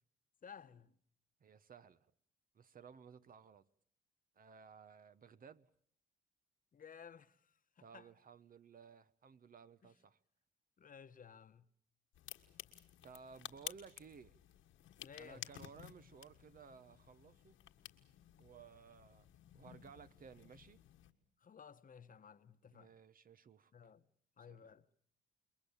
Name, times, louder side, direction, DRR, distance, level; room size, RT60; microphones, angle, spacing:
voice 1, 0.4-1.0 6.7-8.1 9.8-9.9 10.8-11.6 15.0-15.5 21.4-23.0 23.7-24.1 24.4-24.8, left 7 dB, 45° left, 1.2 m, -56 dB
voice 2, 1.4-2.1 2.5-3.7 4.4-5.7 7.8-10.2 13.0-14.3 15.2-17.6 18.4-19.3 19.5-20.8 22.7-23.7 24.4-24.6, right 6 dB, 45° right, 1.0 m, -58 dB
sound 1, 12.1-21.1, left 12 dB, 80° left, 1.7 m, -54 dB
28.0 x 22.0 x 7.2 m
cardioid pair, 90°, 20 cm